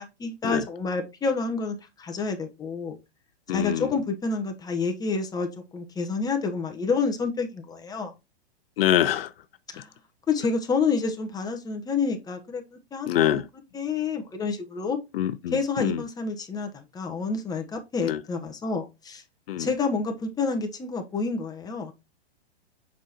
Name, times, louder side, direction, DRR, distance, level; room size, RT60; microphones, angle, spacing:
voice 1, 0.0-3.0 3.5-5.5 5.7-8.1 9.7-9.9 10.3-12.6 12.9-13.4 13.7-15.0 15.5-19.2 19.6-21.9, left 4 dB, 10° left, 1.0 m, -28 dB
voice 2, 3.5-3.9 8.8-9.3 13.1-13.5 15.1-16.0 18.0-18.2 19.5-19.7, left 12 dB, 60° left, 0.5 m, -25 dB
7.3 x 5.0 x 2.9 m
hypercardioid pair, 130°, 32 cm